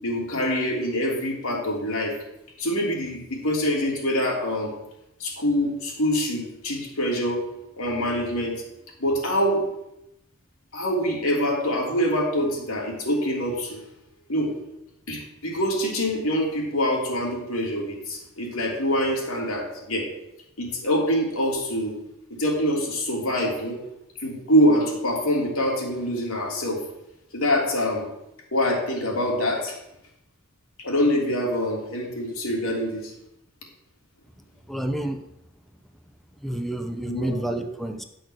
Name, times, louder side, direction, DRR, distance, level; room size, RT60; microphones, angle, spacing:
voice 1, 0.0-2.2 2.6-4.7 5.2-7.4 7.8-8.6 9.0-9.6 10.7-13.8 14.3-14.5 15.1-20.1 20.6-22.0 22.4-23.8 24.2-26.8 27.3-28.1 28.5-29.8 30.8-33.1 37.1-37.6, equal, 90° left, -2 dB, 3.2 m, -25 dB
voice 2, 34.7-35.2 36.4-38.0, right 1 dB, ahead, 6 dB, 0.7 m, -29 dB
10.5 x 6.2 x 6.5 m, 0.84 s
head